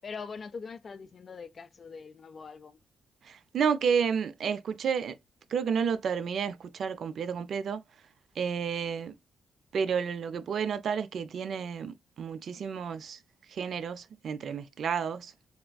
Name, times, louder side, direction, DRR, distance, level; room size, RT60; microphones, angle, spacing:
voice 1, 0.0-2.8, left 5 dB, 40° left, 0.4 m, -42 dB
voice 2, 3.2-5.2 5.5-7.8 8.4-9.1 9.7-13.2 13.5-15.3, right 6 dB, 60° right, 0.3 m, -31 dB
3.5 x 2.3 x 2.2 m
wide cardioid pair, 145°, 0 cm